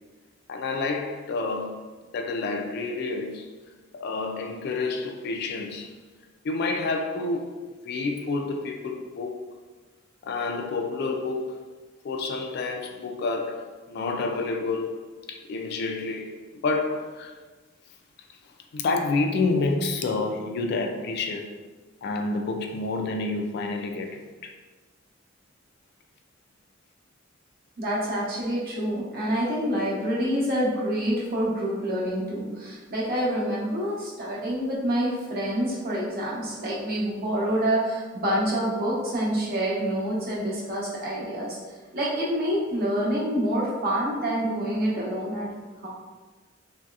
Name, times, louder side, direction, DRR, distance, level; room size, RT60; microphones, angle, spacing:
voice 1, 0.5-1.8 2.1-3.5 3.9-6.0 6.4-7.6 7.8-9.4 10.2-11.6 12.0-17.4 18.7-21.5 22.0-24.5, left 3 dB, 55° left, 3 dB, 0.3 m, -29 dB
voice 2, 27.8-41.6 41.9-45.5 45.8-45.9, equal, 50° right, -5 dB, 0.8 m, -27 dB
3.0 x 2.7 x 2.3 m, 1.3 s
head